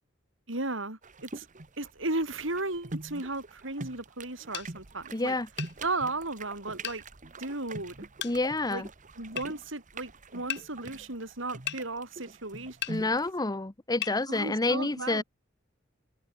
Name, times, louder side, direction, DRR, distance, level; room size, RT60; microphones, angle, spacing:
voice 1, 0.5-1.5 1.8-5.3 5.8-7.0 7.4-8.0 8.7-8.8 9.2-12.8 13.0-13.1 14.3-15.2, right 2 dB, 70° right, 6.7 m, -35 dB
sound 1, 1.0-13.3, right 2 dB, 40° right, 1.4 m, -44 dB
sound 2, 4.5-4.7 5.6-5.8 6.8-7.0 8.2-8.4 9.4-9.5 10.5-10.7 11.7-11.8 12.8-13.0 14.0-14.2, left 12 dB, 60° left, 2.9 m, -35 dB
voice 2, 5.1-5.5 8.2-8.9 12.9-15.2, left 2 dB, 20° left, 0.9 m, -28 dB
head